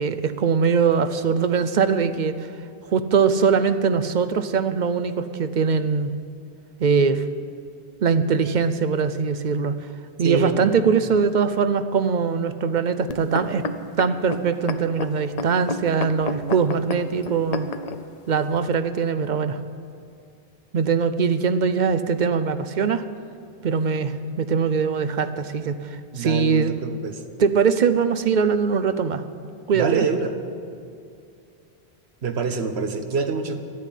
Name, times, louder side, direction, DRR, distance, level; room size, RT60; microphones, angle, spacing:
voice 1, 0.0-2.3 2.9-6.1 6.8-7.3 8.0-9.7 10.2-13.6 14.0-17.7 18.3-19.6 20.7-23.0 23.6-26.7 27.4-29.2 29.7-30.0, right 6 dB, 55° right, 11 dB, 0.7 m, -22 dB
voice 2, 10.2-10.8 26.1-27.2 29.7-30.3 32.2-33.6, right 5 dB, 85° right, 7 dB, 1.3 m, -26 dB
sound 1, 13.1-18.0 18.7-18.8, left 3 dB, 45° left, 0.7 m, -30 dB
12.5 x 9.4 x 9.1 m, 2.4 s
omnidirectional pair, 1.1 m